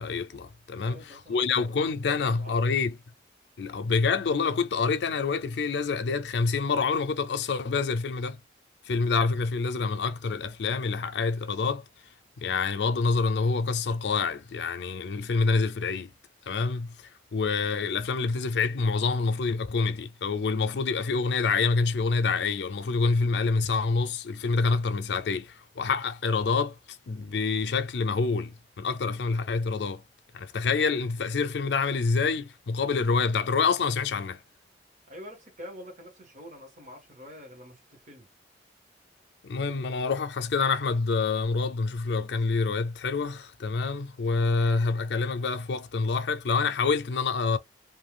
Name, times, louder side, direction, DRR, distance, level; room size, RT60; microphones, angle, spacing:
voice 1, 0.0-3.0 3.6-8.4 8.9-11.8 12.4-16.1 16.5-17.0 17.3-30.0 30.3-34.4 39.4-47.6, left 4 dB, 70° left, 0.4 m, -27 dB
voice 2, 0.7-1.7 2.0-2.6 35.1-38.3, left 1 dB, 45° right, 1.3 m, -46 dB
2.6 x 2.3 x 3.3 m
head